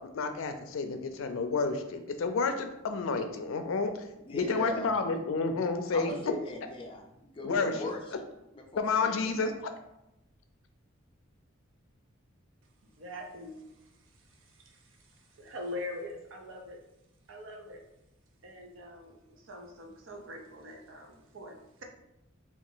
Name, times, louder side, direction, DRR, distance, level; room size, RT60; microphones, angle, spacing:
voice 1, 0.1-3.9 4.3-6.1 7.4-7.7 8.8-9.5, left 4 dB, 80° left, 7 dB, 0.4 m, -30 dB
voice 2, 4.2-5.2 5.9-8.3 8.5-9.7, left 1 dB, 25° left, 1 dB, 0.5 m, -40 dB
voice 3, 12.8-16.8 17.3-17.8 18.4-21.8, left 1 dB, 70° right, 2 dB, 0.6 m, -44 dB
2.9 x 2.4 x 3.8 m, 0.88 s
head